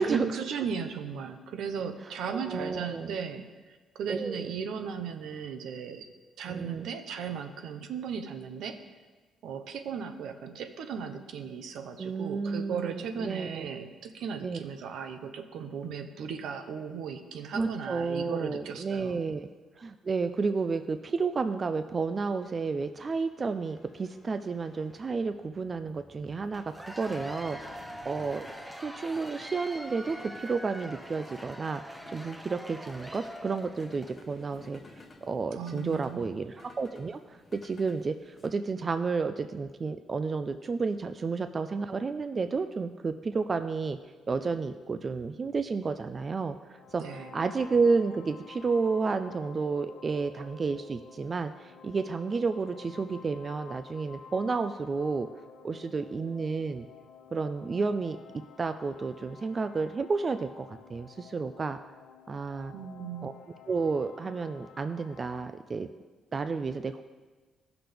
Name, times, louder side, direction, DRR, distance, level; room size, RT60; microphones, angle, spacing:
voice 1, 0.0-3.5 3.9-6.1 6.4-8.8 9.4-19.2 35.5-36.3 46.9-47.3 62.7-63.3, right 6 dB, 80° right, 7 dB, 0.8 m, -36 dB
voice 2, 2.3-3.1 4.1-4.5 6.5-6.9 12.0-13.7 14.4-14.6 17.5-19.5 19.8-26.6 27.0-28.5 28.8-44.0 44.3-55.3 55.6-56.9 57.3-58.2 58.6-61.8 62.3-62.7 63.2-63.3 63.7-65.9 66.3-67.0, right 4 dB, 35° right, 9 dB, 0.4 m, -31 dB
sound 1, 19.2-38.5, left 3 dB, 35° left, 1.1 m, -55 dB
Cheering / Applause / Crowd, 26.5-34.2, equal, 5° right, 0.8 m, -43 dB
sound 2, 46.7-65.5, left 5 dB, 80° left, 0.6 m, -51 dB
15.0 x 5.9 x 3.5 m, 1.4 s
cardioid pair, 90°, 0 cm